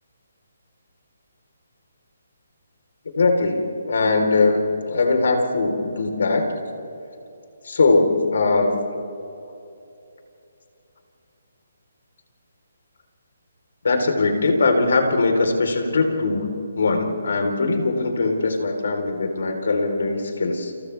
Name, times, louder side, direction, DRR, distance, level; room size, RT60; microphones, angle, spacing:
voice 1, 3.2-6.5 7.6-8.8 13.8-16.5 16.8-20.7, left 3 dB, 70° left, 4 dB, 4.1 m, -21 dB
29.5 x 29.0 x 3.5 m, 2.8 s
hypercardioid pair, 170°, 0 cm